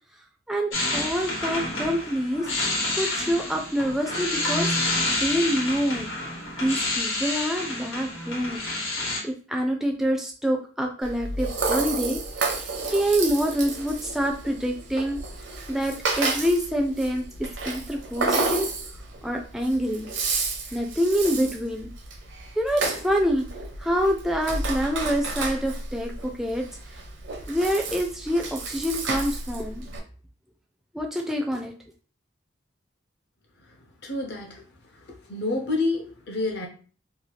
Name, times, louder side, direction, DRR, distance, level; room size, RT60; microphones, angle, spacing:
voice 1, 0.5-4.7 5.2-6.1 6.6-8.7 9.2-15.2 15.7-18.7 19.2-20.1 20.7-21.9 22.6-23.5 23.8-26.7 27.5-29.9 30.9-31.7, equal, ahead, 1 dB, 0.3 m, -26 dB
sound 1, 0.7-9.2, left 2 dB, 85° left, 1.1 m, -28 dB
Rattle (instrument), 11.0-30.0, right 3 dB, 70° right, 0.6 m, -31 dB
voice 2, 34.0-34.6 35.3-36.7, left 2 dB, 55° left, 2 dB, 0.7 m, -28 dB
2.8 x 2.3 x 3.1 m, 0.40 s
head